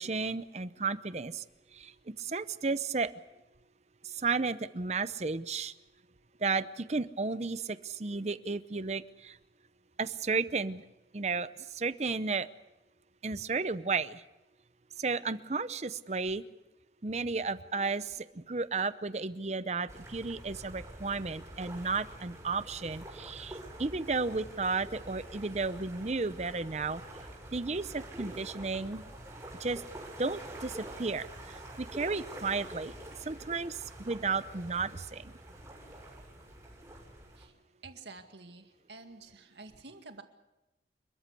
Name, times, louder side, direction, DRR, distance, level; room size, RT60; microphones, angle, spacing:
voice 1, 0.0-1.4 1.8-1.9 2.2-3.1 4.2-5.7 6.4-9.4 10.0-10.8 11.1-11.5 11.7-12.5 13.2-14.2 15.0-16.4 17.0-27.0 27.5-29.0 29.6-29.8 30.2-32.9 33.2-35.3, right 4 dB, 40° right, 15 dB, 0.7 m, -33 dB
sound 1, 19.9-37.5, right 1 dB, 15° right, 6.6 m, -47 dB
voice 2, 37.8-40.2, right 3 dB, 80° right, 6 dB, 2.1 m, -49 dB
29.5 x 13.5 x 8.3 m, 0.99 s
head